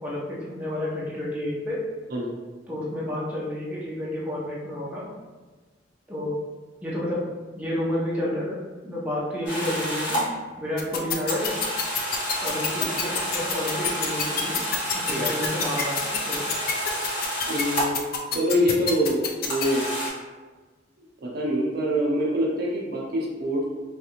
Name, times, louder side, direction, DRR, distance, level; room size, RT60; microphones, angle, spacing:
voice 1, 0.0-1.8 2.7-5.1 6.1-6.3 6.8-7.3 7.5-10.3 10.6-11.5 12.4-14.6 14.9-16.0 16.2-16.4, left 1 dB, 10° right, -7 dB, 0.7 m, -30 dB
sound 1, 9.4-10.2 11.3-18.0 19.5-20.1, equal, 70° left, 1.1 m, -29 dB
sound 2, 10.8-19.6, left 8 dB, 50° left, 0.4 m, -26 dB
voice 2, 17.5-18.0 18.3-19.9 21.2-23.6, equal, 55° right, -3 dB, 0.6 m, -25 dB
3.2 x 2.5 x 2.9 m, 1.3 s
head